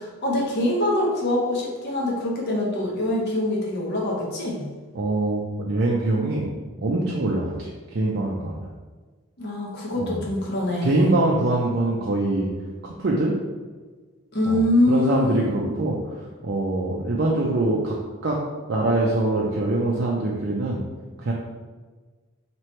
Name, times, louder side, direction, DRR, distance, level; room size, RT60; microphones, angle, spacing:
voice 1, 0.0-4.6 9.4-11.1 14.3-15.9, left 1 dB, 50° left, -2 dB, 0.9 m, -24 dB
voice 2, 4.9-6.5 6.8-8.6 10.0-10.2 10.8-12.5 12.8-13.3 14.5-14.6 14.9-16.0 16.4-18.0 18.2-18.4 18.7-20.8 21.2-21.3, right 2 dB, 50° right, -3 dB, 0.4 m, -23 dB
3.1 x 3.0 x 4.3 m, 1.4 s
head